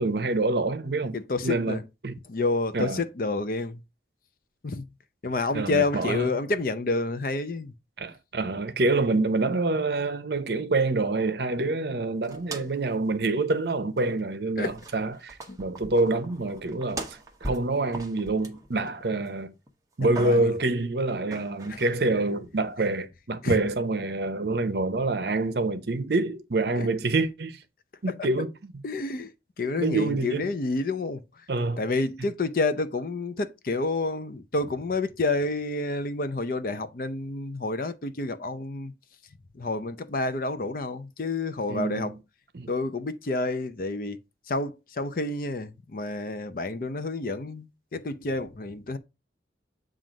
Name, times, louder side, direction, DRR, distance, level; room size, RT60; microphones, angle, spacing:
voice 1, 0.0-1.2 1.4-2.2 2.7-3.0 5.5-6.3 8.0-19.5 20.0-27.6 28.0-28.7 29.8-30.5 31.5-31.8 41.7-42.2 42.5-42.7, right 2 dB, 65° right, 0.8 m, -27 dB
voice 2, 1.1-1.8 2.3-3.8 4.6-4.8 5.2-7.7 14.6-14.7 15.5-15.6 20.2-20.5 21.7-21.8 23.4-23.6 26.8-26.9 28.8-29.3 29.6-31.2 31.8-38.9 39.6-42.1 42.7-44.2 44.5-49.0, left 3 dB, 50° left, 0.5 m, -29 dB
sound 1, 12.2-12.9 13.2-13.3 14.0-14.4 14.6-19.3 19.7-20.6 21.3-22.0, right 2 dB, 20° right, 0.9 m, -40 dB
7.5 x 2.5 x 5.1 m
head